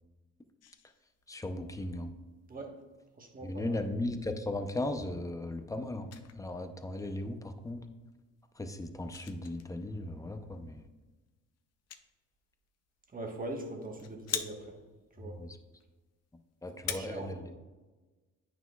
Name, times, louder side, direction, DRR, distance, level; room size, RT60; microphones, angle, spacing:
sound 1, 0.6-17.0, left 9 dB, 55° left, 0.6 m, -46 dB
voice 1, 1.3-2.1 3.4-7.8 8.6-10.8 15.4-15.5 16.6-17.5, left 1 dB, 10° left, 7 dB, 0.6 m, -37 dB
voice 2, 3.2-3.8 13.1-14.8 15.2-15.4 16.8-17.5, right 2 dB, 30° right, 2 dB, 1.3 m, -41 dB
9.0 x 6.0 x 2.3 m, 1.2 s
cardioid pair, 90°, 30 cm